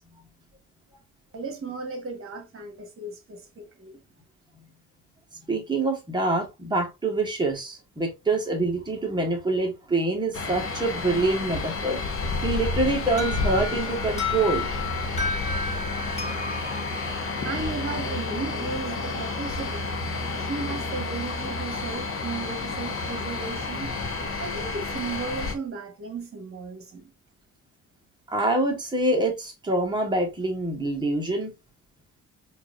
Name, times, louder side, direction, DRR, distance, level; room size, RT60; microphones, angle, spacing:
voice 1, 1.3-4.0 17.4-20.0 20.4-23.9 24.4-27.1, right 4 dB, 45° right, 1.5 m, -35 dB
voice 2, 5.5-12.0 12.4-14.7 28.3-31.5, right 2 dB, 15° right, 1.5 m, -25 dB
sound 1, 10.3-25.5, left 3 dB, 45° left, 1.0 m, -30 dB
Alarm, 13.2-18.0, left 4 dB, 20° left, 1.7 m, -33 dB
4.5 x 2.8 x 2.5 m
cardioid pair, 90°, 30 cm